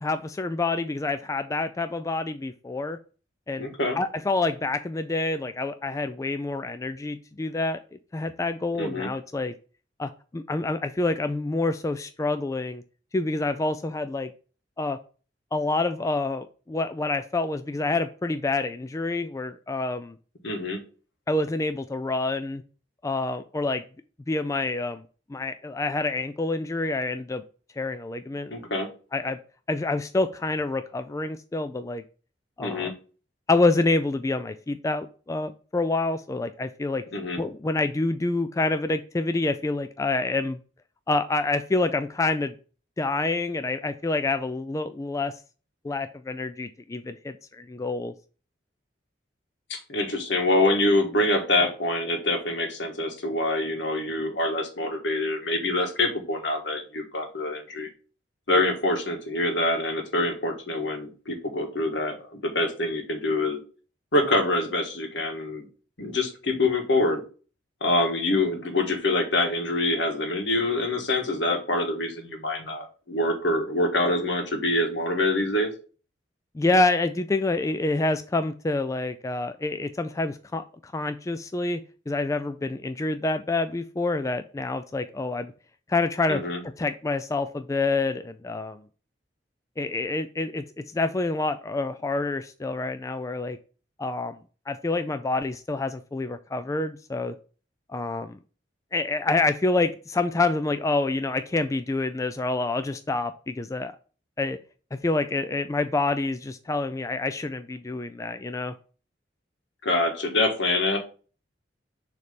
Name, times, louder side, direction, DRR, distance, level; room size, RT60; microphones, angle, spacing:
voice 1, 0.0-3.0 3.5-3.7 4.0-7.8 8.1-9.5 10.0-12.8 13.1-14.3 14.8-15.0 15.5-20.2 21.3-22.6 23.0-23.8 24.3-25.0 25.3-27.4 27.8-28.7 29.1-29.4 29.7-32.0 32.6-32.9 33.5-37.0 37.4-40.6 41.1-42.5 43.0-45.3 45.8-48.1 76.5-81.8 82.1-85.5 85.9-86.4 86.8-88.8 89.8-90.6 90.9-93.6 94.0-94.4 94.7-97.3 97.9-98.4 98.9-103.9 104.4-104.6 104.9-108.7, left 2 dB, 15° left, 9 dB, 0.3 m, -27 dB
voice 2, 3.6-4.0 8.8-9.1 20.4-20.8 28.5-28.9 32.6-32.9 37.1-37.4 49.7-57.9 58.5-63.6 64.1-65.6 66.0-67.2 67.8-75.7 86.3-86.6 109.8-111.0, left 2 dB, 75° left, 4 dB, 1.6 m, -25 dB
6.7 x 3.3 x 5.1 m, 0.37 s
head